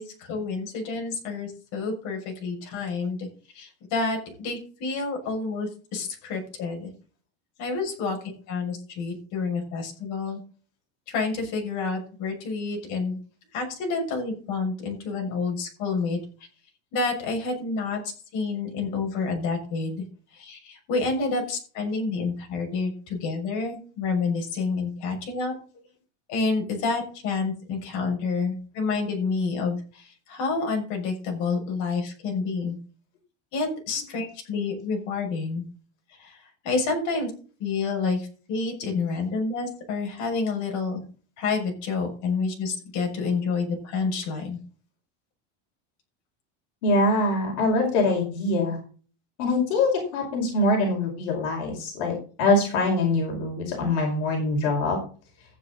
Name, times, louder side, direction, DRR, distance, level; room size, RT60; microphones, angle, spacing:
voice 1, 0.0-3.3 3.5-6.9 7.6-10.4 11.1-13.2 13.5-16.2 16.9-20.0 20.3-25.5 26.3-32.8 33.5-35.6 36.1-37.3 37.6-41.0 41.4-44.6, left 4 dB, 60° left, 2 dB, 6.6 m, -29 dB
voice 2, 46.8-48.8 49.4-55.0, left 2 dB, 80° left, 1 dB, 5.2 m, -24 dB
14.5 x 9.3 x 4.0 m, 0.39 s
cardioid pair, 150°, 34 cm